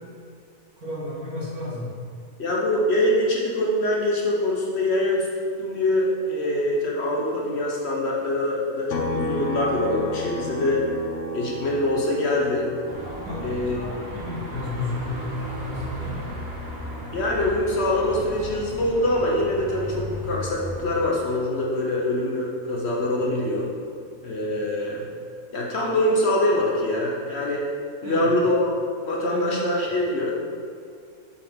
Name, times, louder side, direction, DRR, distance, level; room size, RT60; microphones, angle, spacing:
voice 1, 0.8-1.9 13.2-16.3 28.0-28.4 29.2-29.5, left 2 dB, 75° right, -6 dB, 2.1 m, -33 dB
voice 2, 2.4-5.3 5.6-10.8 11.3-12.7 13.4-13.8 17.1-23.7 24.2-25.1 25.5-27.7 28.0-28.7 29.0-30.4, left 1 dB, 50° left, -2 dB, 1.0 m, -24 dB
sound 1, 8.9-22.4 22.8-25.0, left 1 dB, 90° left, 0.5 m, -37 dB
Car passing by / Traffic noise roadway noise / Engine, 12.9-21.0, left 1 dB, 40° right, 1.4 m, -36 dB
6.8 x 5.2 x 3.6 m, 2.4 s
omnidirectional pair, 1.6 m